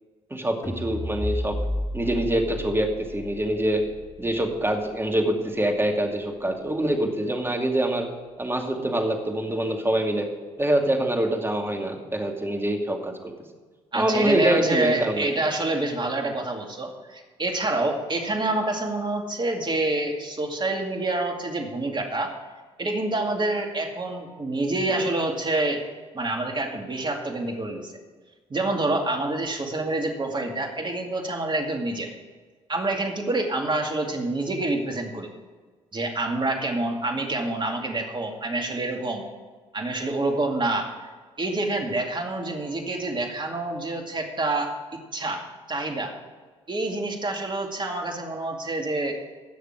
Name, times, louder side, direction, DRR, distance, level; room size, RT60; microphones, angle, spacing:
voice 1, 0.3-1.6 1.9-3.8 4.2-8.1 8.4-10.3 10.6-13.3 13.9-15.3, right 1 dB, 15° right, 2 dB, 2.3 m, -25 dB
sound 1, 0.6-6.9, left 1 dB, 20° left, 2.4 m, -34 dB
voice 2, 13.9-22.3 22.8-25.8 26.1-27.9 28.5-32.1 32.7-35.3 35.9-39.2 39.7-41.1 41.4-46.1 46.7-49.1, right 2 dB, 30° right, 3 dB, 2.3 m, -27 dB
17.5 x 6.6 x 4.8 m, 1.4 s
hypercardioid pair, 50°, 16 cm